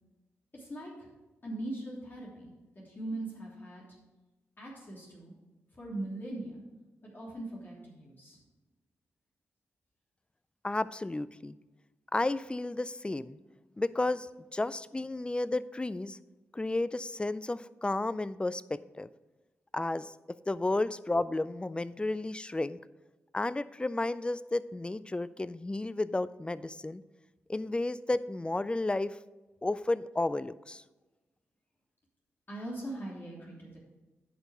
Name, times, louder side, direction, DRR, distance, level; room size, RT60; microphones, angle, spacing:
voice 1, 0.5-1.1 1.4-2.5 2.7-3.8 4.6-5.3 5.8-6.6 7.0-8.4 32.5-33.8, right 1 dB, 40° left, -4 dB, 3.1 m, -40 dB
voice 2, 10.6-11.6 12.1-13.4 13.8-16.2 16.5-19.1 19.7-20.1 20.5-22.8 23.3-27.0 27.5-29.2 29.6-30.8, left 2 dB, 20° left, 17 dB, 0.4 m, -32 dB
9.9 x 5.3 x 5.0 m, 1.1 s
supercardioid pair, 45°, 5 cm